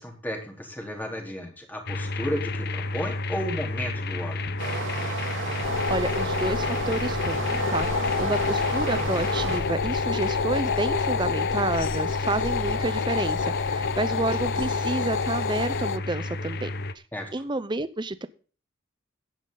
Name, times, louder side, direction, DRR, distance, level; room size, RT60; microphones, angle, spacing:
voice 1, 0.0-4.6 17.1-17.3, equal, 10° left, 1 dB, 3.7 m, -33 dB
sound 1, 1.9-16.9, left 2 dB, 55° left, 1.0 m, -32 dB
Stream, 4.6-9.6, right 3 dB, 75° right, 3.5 m, -32 dB
sound 2, 5.6-16.0, left 5 dB, 70° left, 0.6 m, -28 dB
voice 2, 5.9-16.7 17.3-18.3, right 2 dB, 25° right, 14 dB, 0.7 m, -30 dB
15.5 x 10.5 x 3.9 m, 0.39 s
head